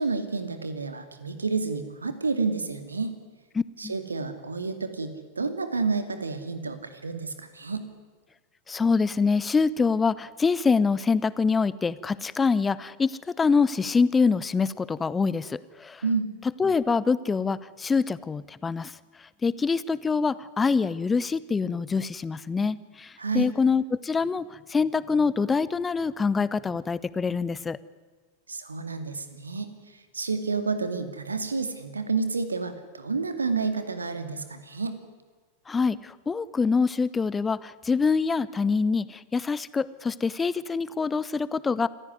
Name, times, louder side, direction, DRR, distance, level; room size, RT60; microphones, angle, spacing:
voice 1, 0.0-3.1 3.8-7.8 16.0-16.3 23.2-23.5 28.5-29.7 30.1-34.9, right 4 dB, 75° right, 10 dB, 2.4 m, -30 dB
voice 2, 3.5-3.9 8.7-16.0 16.6-18.9 19.4-27.8 35.7-41.9, left 5 dB, 15° left, 18 dB, 0.8 m, -25 dB
27.0 x 15.5 x 9.6 m, 1.4 s
figure-of-eight pair, 90°, 0 cm